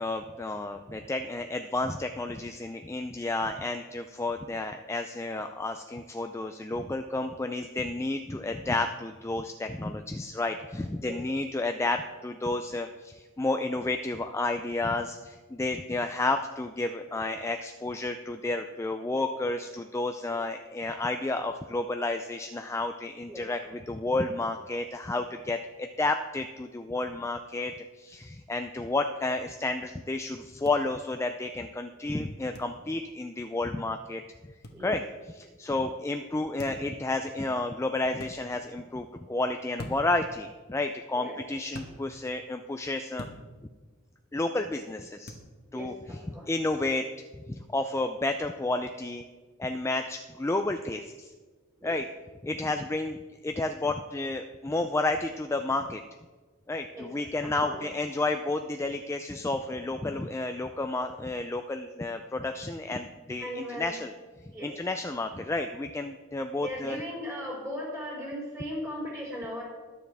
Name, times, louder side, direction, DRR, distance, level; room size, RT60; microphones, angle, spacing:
voice 1, 0.0-34.2 34.8-35.0 35.4-43.3 44.3-45.3 45.7-45.9 46.3-47.1 47.5-49.2 49.6-51.3 51.8-52.1 52.4-53.2 53.4-56.0 56.7-64.1 64.6-67.0, left 2 dB, 15° left, 6 dB, 0.3 m, -31 dB
sound 1, 30.6-30.8 32.5-32.7 34.6-34.8 36.6-36.9 38.1-38.3 39.8-40.2 41.7-41.9 43.2-43.4 45.2-45.5, left 1 dB, 50° left, 1.2 m, -42 dB
voice 2, 45.7-46.5 51.8-52.0 56.9-57.8 63.4-64.0 64.5-64.7 66.6-69.6, equal, 15° right, -6 dB, 4.3 m, -38 dB
21.5 x 7.1 x 3.4 m, 1.4 s
head